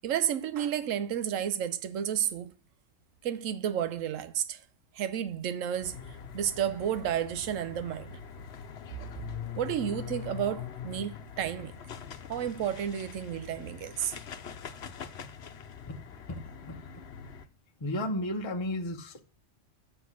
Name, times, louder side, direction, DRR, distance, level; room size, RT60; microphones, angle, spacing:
voice 1, 0.0-2.5 3.2-4.6 4.9-6.0 6.3-8.2 9.6-11.7 12.3-14.2, right 9 dB, 85° right, 1.1 m, -31 dB
sound 1, 5.8-17.4, left 8 dB, 60° left, 1.0 m, -43 dB
voice 2, 16.3-16.8 17.8-19.2, left 1 dB, 25° left, 0.8 m, -34 dB
7.7 x 6.9 x 6.1 m
omnidirectional pair, 1.3 m